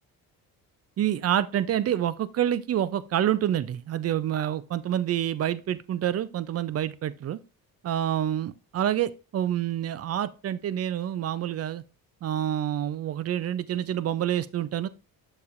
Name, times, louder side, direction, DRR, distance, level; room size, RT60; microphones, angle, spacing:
voice 1, 1.0-7.4 7.8-11.8 12.2-14.9, right 11 dB, 40° right, 0.5 m, -27 dB
6.9 x 6.8 x 2.5 m
cardioid pair, 115°, 36 cm